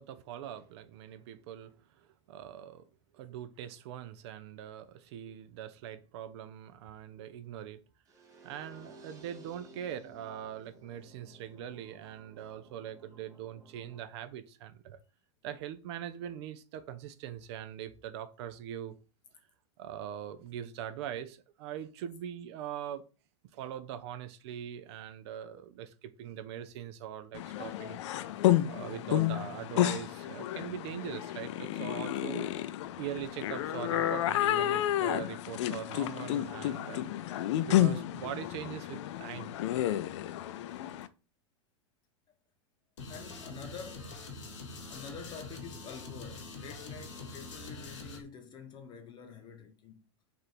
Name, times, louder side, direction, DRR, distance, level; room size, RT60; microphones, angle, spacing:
voice 1, 0.0-2.8 3.1-7.8 8.4-15.0 15.4-19.0 19.8-23.0 23.5-28.0 28.7-32.5 33.0-37.4 37.7-39.6, right 10 dB, 60° right, 0.5 m, -42 dB
sound 1, 8.1-14.0, right 3 dB, 20° right, 0.8 m, -56 dB
sound 2, 27.3-41.1, left 13 dB, 70° left, 0.4 m, -31 dB
voice 2, 39.6-40.1 43.1-44.2 44.4-50.0, left 6 dB, 30° left, 0.8 m, -48 dB
sound 3, 43.0-48.2, left 3 dB, 90° left, 1.2 m, -44 dB
3.4 x 2.5 x 4.3 m
hypercardioid pair, 120°, 15 cm